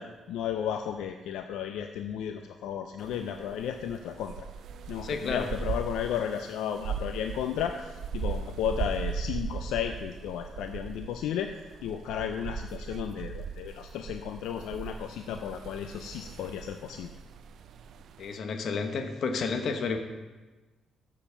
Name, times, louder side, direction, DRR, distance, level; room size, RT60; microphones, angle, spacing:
voice 1, 0.0-4.5 4.9-11.5 11.8-17.1, left 9 dB, 90° left, 6 dB, 0.5 m, -34 dB
sound 1, 3.0-18.4, right 6 dB, 70° right, 0.5 m, -39 dB
voice 2, 5.0-5.5 18.2-20.0, left 4 dB, 65° left, 6 dB, 1.1 m, -31 dB
7.2 x 7.2 x 6.8 m, 1.2 s
cardioid pair, 90°, 0 cm